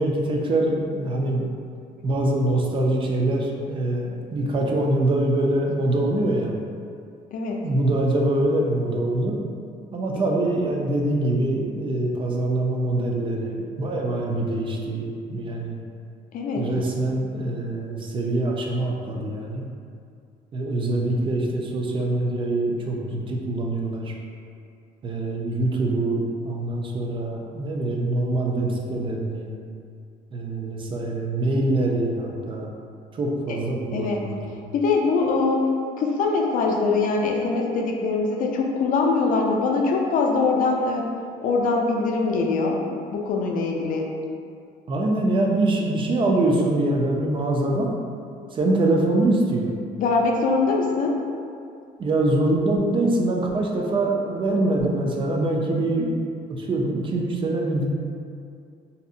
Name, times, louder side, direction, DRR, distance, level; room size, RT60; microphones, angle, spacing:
voice 1, 0.0-1.5 2.0-6.5 7.6-9.4 9.9-15.8 16.6-19.7 20.5-24.1 25.0-29.5 30.3-32.7 33.1-34.4 44.9-47.9 48.5-49.8 52.0-56.1 56.6-57.9, right 2 dB, 30° right, 0 dB, 0.3 m, -24 dB
voice 2, 7.3-7.7 16.3-16.7 33.9-34.3 34.7-35.7 36.0-41.1 41.4-42.8 43.1-44.1 50.0-51.2, left 3 dB, 55° left, 0 dB, 0.4 m, -23 dB
2.6 x 2.0 x 2.5 m, 2.3 s
cardioid pair, 110°, 17 cm